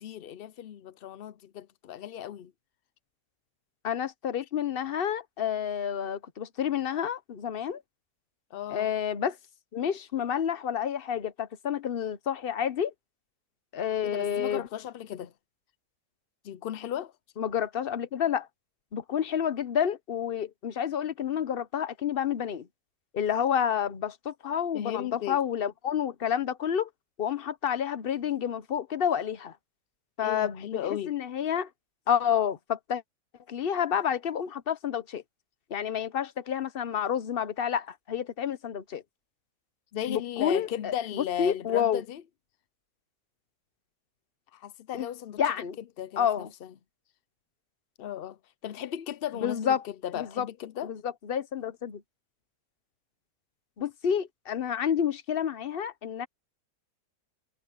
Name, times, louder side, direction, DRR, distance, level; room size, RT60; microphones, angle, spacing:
voice 1, 0.0-2.5 8.5-8.9 14.0-15.3 16.4-17.1 24.7-25.4 30.2-31.1 39.9-42.2 44.5-45.4 46.0-46.7 48.0-50.9, left 11 dB, 85° left, 0.5 m, -36 dB
voice 2, 3.8-7.8 8.7-9.4 9.7-12.9 13.7-14.6 17.4-18.5 18.9-22.7 23.1-26.9 27.2-29.5 30.2-31.7 32.1-33.0 33.5-35.2 35.7-39.0 40.1-42.0 44.9-45.1 45.4-45.8 46.2-46.5 49.4-49.8 50.2-50.5 50.8-52.0 53.8-56.3, left 8 dB, 45° left, 0.8 m, -29 dB
omnidirectional pair, 1.7 m